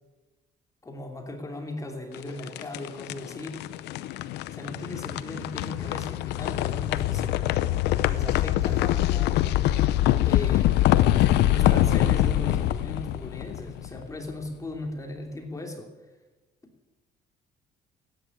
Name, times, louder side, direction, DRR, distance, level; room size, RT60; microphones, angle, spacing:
voice 1, 0.8-3.6 4.5-7.5 8.0-9.4 10.3-10.9 11.5-15.9, left 2 dB, 20° left, 3 dB, 3.0 m, -37 dB
sound 1, 2.1-14.2, left 14 dB, 85° left, 0.7 m, -24 dB
14.5 x 10.0 x 9.9 m, 1.1 s
cardioid pair, 110°, 17 cm